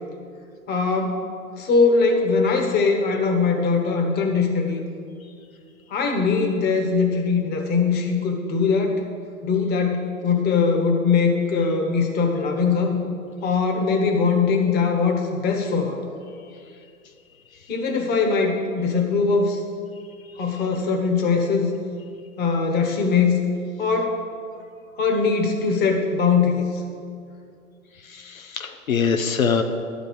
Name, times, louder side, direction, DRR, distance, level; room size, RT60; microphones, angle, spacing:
voice 1, 0.7-1.2 1.6-4.8 5.9-8.9 9.4-13.0 13.4-16.0 17.7-19.6 20.4-21.7 22.4-23.4 23.8-24.2 25.0-26.6, left 4 dB, 25° left, 3 dB, 1.4 m, -21 dB
voice 2, 28.0-29.6, left 6 dB, 75° left, 7 dB, 0.8 m, -23 dB
12.0 x 5.2 x 8.0 m, 2.3 s
figure-of-eight pair, 110°, 42 cm